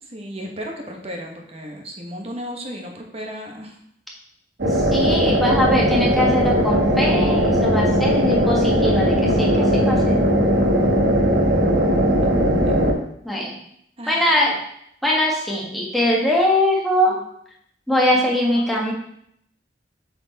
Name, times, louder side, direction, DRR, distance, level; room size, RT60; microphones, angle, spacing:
voice 1, 0.0-3.8 14.0-14.4 18.5-18.9, equal, 35° right, 1 dB, 1.2 m, -34 dB
sound 1, 4.6-12.9, equal, 65° right, 1.2 m, -18 dB
voice 2, 4.9-10.1 13.2-13.5 14.1-14.5 15.0-17.2 17.9-18.9, left 1 dB, ahead, -4 dB, 1.4 m, -21 dB
7.6 x 4.5 x 4.1 m, 0.70 s
head